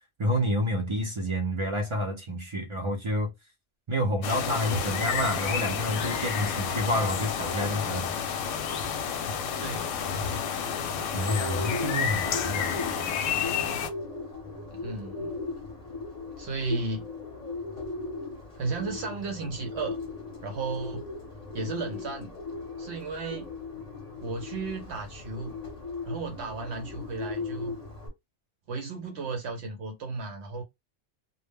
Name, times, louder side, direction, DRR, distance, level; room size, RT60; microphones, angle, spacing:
voice 1, 0.2-3.3 3.9-8.1 11.1-13.2, equal, 50° right, 0.3 m, -29 dB
sound 1, 4.2-13.9, left 7 dB, 85° left, 0.9 m, -30 dB
voice 2, 9.6-9.9 14.7-15.4 16.4-17.1 18.5-20.0 20.4-21.1 21.5-22.3 22.8-23.5 24.2-25.6 26.1-27.8 28.7-30.6, right 3 dB, 70° right, 0.8 m, -34 dB
Bird, 11.1-28.1, left 3 dB, 35° left, 0.7 m, -38 dB
2.1 x 2.0 x 3.3 m
omnidirectional pair, 1.3 m